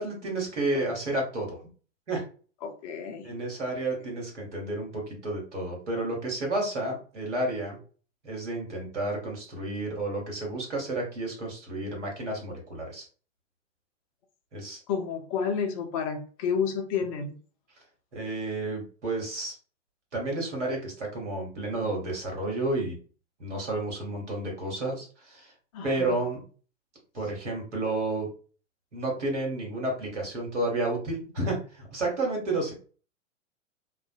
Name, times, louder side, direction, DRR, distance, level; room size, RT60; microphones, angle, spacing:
voice 1, 0.0-1.6 2.1-2.2 3.2-7.8 8.2-13.0 14.5-14.8 18.1-19.5 20.1-23.0 23.4-25.5 25.8-26.4 27.1-28.3 28.9-32.7, right 2 dB, 75° right, 0 dB, 1.2 m, -31 dB
voice 2, 2.6-3.3 14.9-17.3 25.7-26.2, left 6 dB, 30° left, 6 dB, 0.4 m, -30 dB
2.4 x 2.1 x 2.5 m, 0.39 s
figure-of-eight pair, 100°, 36 cm